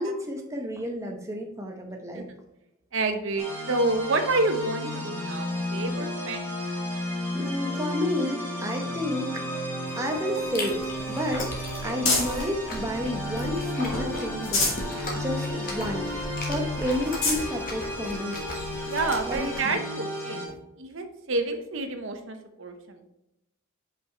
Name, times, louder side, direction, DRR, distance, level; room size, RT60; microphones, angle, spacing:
voice 1, 0.0-2.3 7.3-9.6 10.0-10.8 11.1-14.7 15.1-16.0 16.5-18.4 19.3-19.8, left 1 dB, 15° right, 2 dB, 0.8 m, -31 dB
voice 2, 2.9-6.5 18.8-20.5 20.8-23.1, right 2 dB, 60° right, 7 dB, 0.7 m, -29 dB
sound 1, 3.4-20.5, left 1 dB, 10° left, 1.3 m, -33 dB
sound 2, 9.9-12.5 13.0-13.8 14.2-14.9 15.4-15.5 15.8-15.9 16.5-16.6 17.0-17.5 18.3-18.4 20.2-20.3, left 3 dB, 70° left, 2.5 m, -30 dB
Chewing mastication, 10.4-19.6, left 1 dB, 40° left, 1.3 m, -37 dB
5.6 x 5.0 x 4.4 m, 0.89 s
head